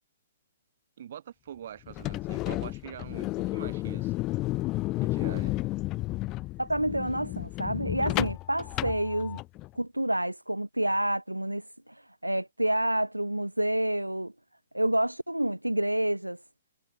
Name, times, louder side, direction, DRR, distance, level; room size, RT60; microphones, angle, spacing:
voice 1, 1.0-4.2 5.0-5.6, right 10 dB, 50° right, 5.5 m, -44 dB
sound 1, 1.9-9.7, left 19 dB, 25° left, 4.8 m, -32 dB
voice 2, 6.6-9.4 9.7-14.3 14.7-16.4, right 1 dB, 90° right, 1.6 m, -28 dB
figure-of-eight pair, 120°, 0 cm